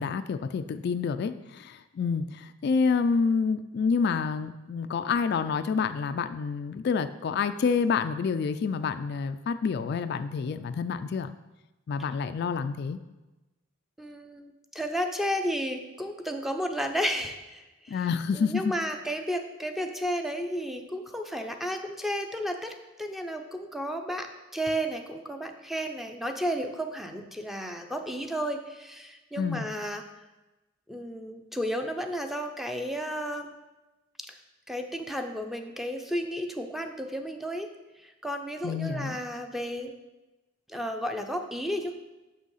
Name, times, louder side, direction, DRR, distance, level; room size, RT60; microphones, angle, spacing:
voice 1, 0.0-11.3 11.9-13.0 17.9-18.7 29.4-29.7 38.6-39.2, left 5 dB, 55° left, 10 dB, 0.3 m, -28 dB
voice 2, 14.0-18.1 18.3-30.0 30.9-33.5 34.3-34.4 34.7-37.7 38.0-39.9 40.7-41.9, equal, ahead, 5 dB, 0.6 m, -33 dB
6.3 x 6.2 x 5.6 m, 1.1 s
head